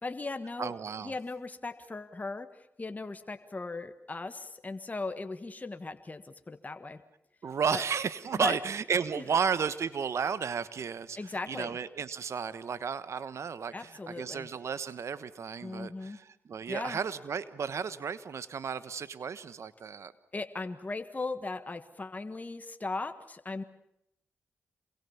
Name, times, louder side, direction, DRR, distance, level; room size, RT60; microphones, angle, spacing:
voice 1, 0.0-0.7 1.0-2.5 2.8-7.0 7.7-7.8 8.3-8.5 9.2-9.3 11.2-11.8 13.7-14.5 15.6-16.2 16.7-17.0 20.3-23.6, left 3 dB, 30° left, 9 dB, 1.5 m, -38 dB
voice 2, 0.6-1.1 7.4-20.1, right 6 dB, 70° right, 15 dB, 1.3 m, -33 dB
27.5 x 22.5 x 7.2 m, 0.78 s
cardioid pair, 50°, 5 cm